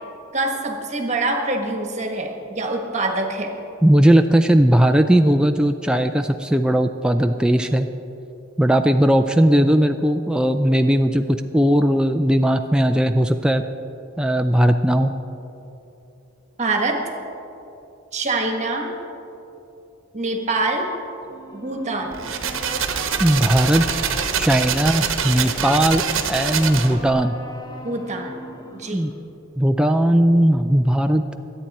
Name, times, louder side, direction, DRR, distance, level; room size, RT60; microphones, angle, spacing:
voice 1, 0.3-3.5 16.6-17.0 18.1-18.9 20.1-20.9 21.5-22.2 27.8-28.4 28.7-29.1, right 2 dB, 35° right, 3 dB, 1.4 m, -25 dB
voice 2, 3.8-7.9 8.6-13.6 14.2-15.1 23.2-23.8 24.4-26.0 26.3-27.4 28.9-29.1 29.6-31.3, right 1 dB, 5° right, 6 dB, 0.3 m, -18 dB
sound 1, 21.2-29.2, equal, 20° left, 0.9 m, -39 dB
sound 2, 22.1-27.1, right 7 dB, 70° right, 1.0 m, -25 dB
23.0 x 9.0 x 4.2 m, 3.0 s
head